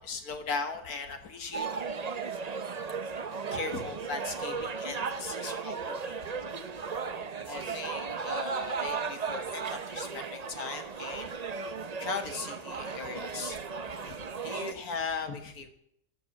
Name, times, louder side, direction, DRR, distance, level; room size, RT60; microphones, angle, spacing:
voice 1, 0.0-1.8 3.5-6.2 7.4-11.3 11.7-15.7, left 5 dB, 60° left, 7 dB, 2.0 m, -38 dB
sound 1, 1.5-14.7, right 5 dB, 50° right, 0.4 m, -36 dB
12.0 x 12.0 x 7.2 m, 0.71 s
omnidirectional pair, 1.8 m